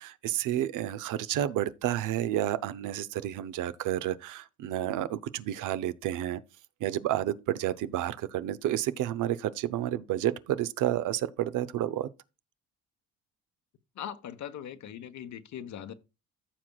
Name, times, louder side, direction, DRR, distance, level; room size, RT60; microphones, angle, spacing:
voice 1, 0.0-6.4 6.8-12.1, right 12 dB, 85° right, 0.6 m, -30 dB
voice 2, 13.9-15.9, left 9 dB, 70° left, 1.1 m, -40 dB
14.5 x 6.0 x 2.3 m
cardioid pair, 90°, 30 cm